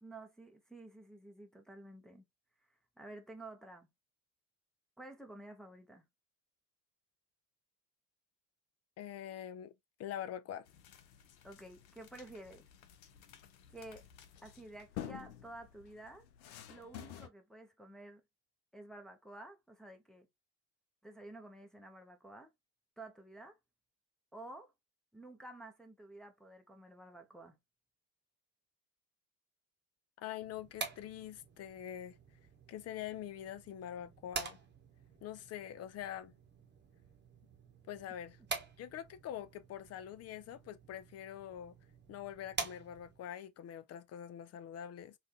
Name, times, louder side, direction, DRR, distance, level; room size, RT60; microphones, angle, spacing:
voice 1, 0.0-2.2 3.0-3.9 5.0-6.1 11.4-12.6 13.7-14.1 14.4-16.3 16.7-18.2 18.7-20.3 21.0-22.5 23.0-23.6 24.3-24.7 25.1-27.6, right 2 dB, ahead, 0.7 m, -51 dB
voice 2, 9.0-9.7 10.0-10.7 30.2-32.2 32.7-34.6 35.2-36.3 37.9-38.4 38.8-41.8 42.1-45.2, left 10 dB, 35° left, 0.4 m, -44 dB
sound 1, 10.7-17.3, left 11 dB, 80° left, 0.6 m, -51 dB
sound 2, 30.4-43.3, right 4 dB, 20° right, 1.1 m, -47 dB
3.4 x 2.4 x 2.7 m
hypercardioid pair, 55°, 50 cm